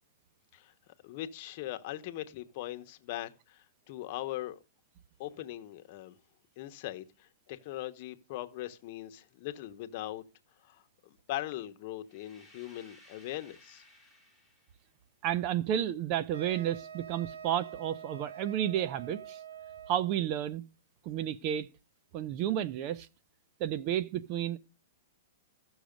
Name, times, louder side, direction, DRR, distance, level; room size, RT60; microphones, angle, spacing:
voice 1, 0.5-4.6 5.2-6.2 6.6-10.2 10.6-13.8, left 14 dB, 45° left, 1.0 m, -40 dB
sound 1, 12.1-14.9, left 1 dB, 10° right, 2.9 m, -59 dB
voice 2, 15.2-19.4 19.9-20.6 21.0-21.7 22.1-23.1 23.6-24.6, right 10 dB, 35° right, 0.6 m, -31 dB
Wind instrument woodwind instrument, 16.3-20.2, right 8 dB, 75° right, 0.6 m, -46 dB
14.5 x 6.4 x 5.2 m
hypercardioid pair, 150°, 0 cm